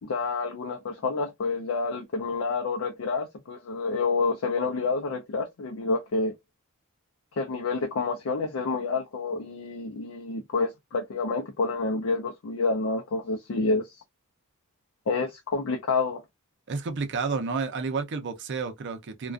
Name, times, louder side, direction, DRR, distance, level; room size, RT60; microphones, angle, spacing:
voice 1, 0.0-6.3 7.4-14.0 15.1-16.2, left 3 dB, 65° left, 0.4 m, -28 dB
voice 2, 16.7-19.3, right 4 dB, 55° right, 0.5 m, -30 dB
2.4 x 2.2 x 2.3 m
head